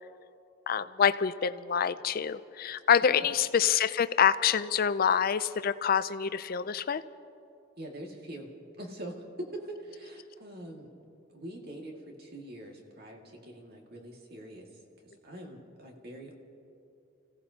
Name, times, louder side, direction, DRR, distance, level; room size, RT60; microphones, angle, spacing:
voice 1, 0.7-7.0, left 7 dB, 45° left, 14 dB, 0.4 m, -26 dB
voice 2, 3.0-3.3 7.8-8.5 8.8-10.9 11.3-16.3, right 1 dB, 50° right, 1 dB, 2.0 m, -44 dB
30.0 x 16.5 x 2.8 m, 2.7 s
head